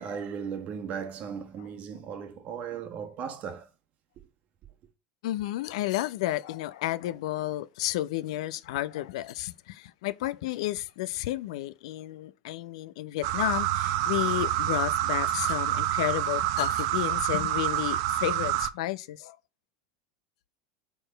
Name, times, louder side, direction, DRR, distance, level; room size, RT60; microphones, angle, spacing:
voice 1, 0.0-3.7, right 7 dB, 45° right, 1.3 m, -37 dB
voice 2, 5.2-19.4, left 15 dB, 65° left, 0.5 m, -32 dB
sound 1, 13.2-18.7, right 13 dB, 60° right, 0.5 m, -27 dB
4.7 x 4.5 x 4.4 m
hypercardioid pair, 80°, 3 cm